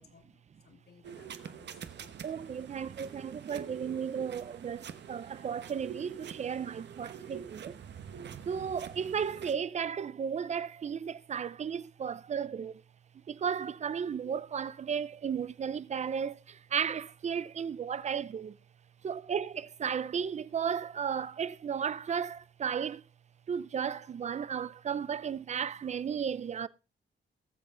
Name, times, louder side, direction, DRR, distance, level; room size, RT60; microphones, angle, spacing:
voice 1, 0.0-2.1, left 6 dB, 55° left, 2.2 m, -61 dB
sound 1, 1.0-9.6, right 8 dB, 60° right, 1.1 m, -46 dB
voice 2, 2.2-7.8 8.5-12.8 13.3-18.6 19.0-23.0 23.5-26.7, right 7 dB, 35° right, 0.5 m, -34 dB
18.5 x 7.8 x 3.8 m
wide cardioid pair, 180°, 20 cm